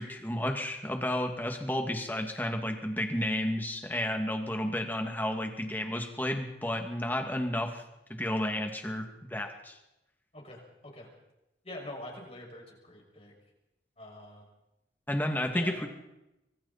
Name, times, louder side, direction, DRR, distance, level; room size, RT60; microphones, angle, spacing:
voice 1, 0.0-7.8 8.2-9.8 15.1-15.9, left 1 dB, 10° left, 4 dB, 2.4 m, -32 dB
voice 2, 10.3-11.1 11.6-13.3 14.0-14.5 15.5-15.8, left 1 dB, 35° left, 0 dB, 6.6 m, -45 dB
25.5 x 24.0 x 4.4 m, 0.91 s
head